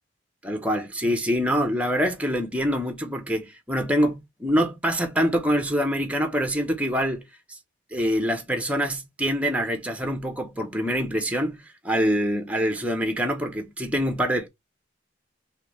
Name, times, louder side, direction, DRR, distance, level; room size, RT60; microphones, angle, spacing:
voice 1, 0.4-7.2 7.5-7.6 7.9-14.5, equal, 5° right, 0.7 m, -25 dB
3.8 x 2.8 x 3.0 m
head